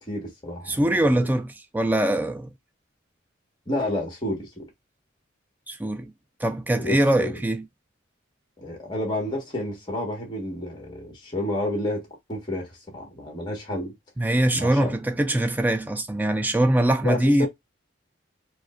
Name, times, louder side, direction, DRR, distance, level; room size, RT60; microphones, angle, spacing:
voice 1, 0.0-1.3 3.7-4.7 6.7-7.4 8.6-13.9 14.5-14.9 17.0-17.5, left 1 dB, 20° left, 1.3 m, -30 dB
voice 2, 0.7-2.5 5.7-6.1 6.4-7.7 14.2-17.5, right 1 dB, 10° right, 0.3 m, -22 dB
4.8 x 2.1 x 2.4 m
head